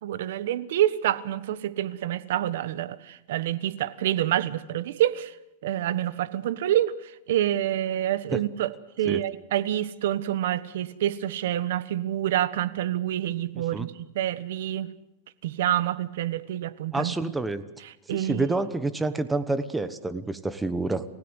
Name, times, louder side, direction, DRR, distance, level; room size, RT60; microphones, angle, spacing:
voice 1, 0.0-5.3 5.6-14.9 15.4-17.3 18.1-18.5, right 12 dB, 70° right, 16 dB, 1.3 m, -27 dB
voice 2, 13.5-13.9 16.9-17.6 18.1-21.0, right 2 dB, 10° right, 13 dB, 1.2 m, -28 dB
29.5 x 16.0 x 8.1 m, 0.92 s
supercardioid pair, 145°, 0 cm